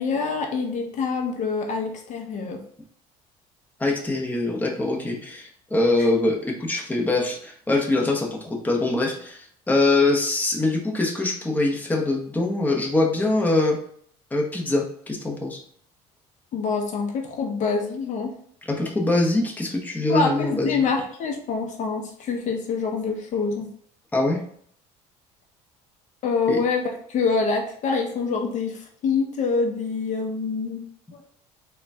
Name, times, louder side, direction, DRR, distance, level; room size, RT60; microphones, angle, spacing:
voice 1, 0.0-2.6 16.5-18.3 20.1-23.7 26.2-30.8 31.1-31.2, left 4 dB, 50° left, 3 dB, 0.7 m, -26 dB
voice 2, 3.8-13.8 14.3-15.6 18.6-20.8 24.1-24.4 26.5-26.6, left 2 dB, 10° left, 0 dB, 0.8 m, -23 dB
3.8 x 2.2 x 3.4 m, 0.62 s
supercardioid pair, 95°, 15 cm